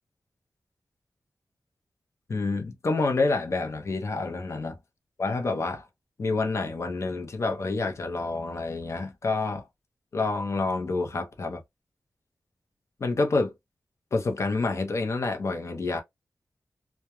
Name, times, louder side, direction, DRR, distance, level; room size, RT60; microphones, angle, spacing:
voice 1, 2.3-4.8 5.2-5.9 6.2-9.7 10.1-11.6 13.0-13.5 14.1-16.0, left 3 dB, 50° left, 0.6 m, -28 dB
2.3 x 2.2 x 2.9 m
wide cardioid pair, 110°, 6 cm